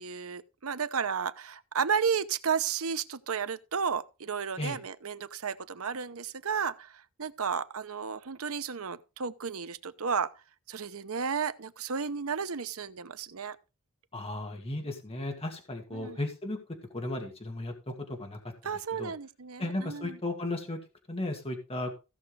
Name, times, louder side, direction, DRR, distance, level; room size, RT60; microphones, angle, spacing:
voice 1, 0.0-10.3 10.7-13.6 15.9-16.2 18.6-20.2, right 6 dB, 75° right, 0.8 m, -33 dB
voice 2, 14.1-16.6 16.9-17.9 18.2-18.4 19.0-19.1 19.6-20.8 21.1-21.9, left 1 dB, 25° left, 2.1 m, -35 dB
16.0 x 6.3 x 3.4 m
head